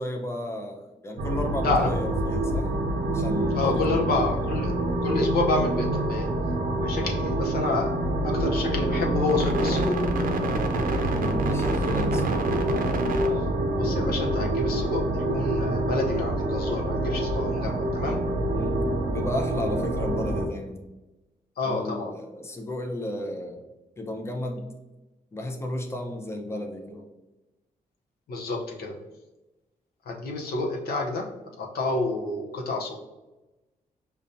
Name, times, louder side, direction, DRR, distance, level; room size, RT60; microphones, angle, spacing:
voice 1, 0.0-2.7 3.1-4.1 11.1-12.5 18.5-18.8 19.1-20.8 21.6-23.6 24.0-24.7 25.3-27.1, left 1 dB, 15° left, 3 dB, 0.6 m, -33 dB
sound 1, 1.2-20.5, right 1 dB, 65° right, 0.6 m, -26 dB
voice 2, 3.5-6.3 6.8-7.9 8.2-10.0 13.3-13.4 13.8-18.2 21.6-22.1 28.3-28.9 30.1-31.3 31.6-33.0, left 2 dB, 80° left, 0 dB, 0.7 m, -28 dB
5.2 x 2.2 x 2.6 m, 1.1 s
cardioid pair, 60°, 16 cm